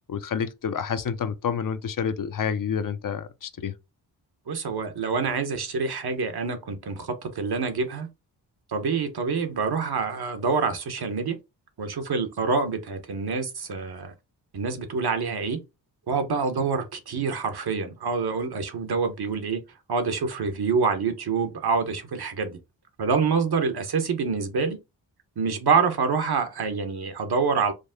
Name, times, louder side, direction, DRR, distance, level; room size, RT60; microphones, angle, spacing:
voice 1, 0.1-3.7, left 7 dB, 50° left, 0.6 m, -29 dB
voice 2, 4.5-8.1 8.7-11.4 11.8-14.1 14.5-15.6 16.1-19.6 19.9-22.6 23.0-24.8 25.4-27.7, right 5 dB, 60° right, 1.1 m, -26 dB
5.1 x 2.1 x 3.6 m
cardioid pair, 55°, 43 cm